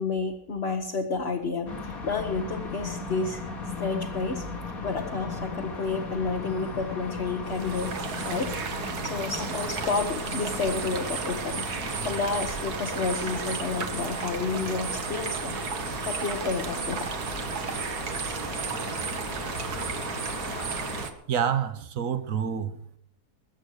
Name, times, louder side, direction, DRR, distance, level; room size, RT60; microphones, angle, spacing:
voice 1, 0.0-3.4 3.8-4.4 4.8-8.5 9.0-15.6 15.9-17.1, left 4 dB, 45° left, 1.4 m, -30 dB
sound 1, 1.7-21.1, left 3 dB, 60° left, 2.7 m, -37 dB
sound 2, 7.5-21.1, right 6 dB, 80° right, 1.8 m, -33 dB
voice 2, 21.3-23.0, right 8 dB, 60° right, 1.4 m, -28 dB
21.0 x 8.1 x 6.5 m
omnidirectional pair, 1.6 m